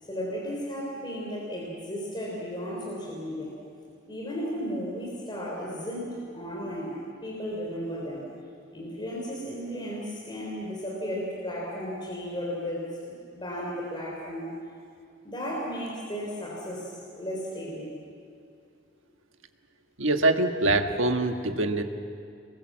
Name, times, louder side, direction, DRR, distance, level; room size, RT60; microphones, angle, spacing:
voice 1, 0.0-3.5 4.1-6.9 7.2-8.2 8.7-14.5 15.2-17.9, equal, 25° left, -4 dB, 3.8 m, -34 dB
voice 2, 20.0-21.8, right 2 dB, 85° right, 5 dB, 1.5 m, -24 dB
26.0 x 21.0 x 7.5 m, 2.3 s
head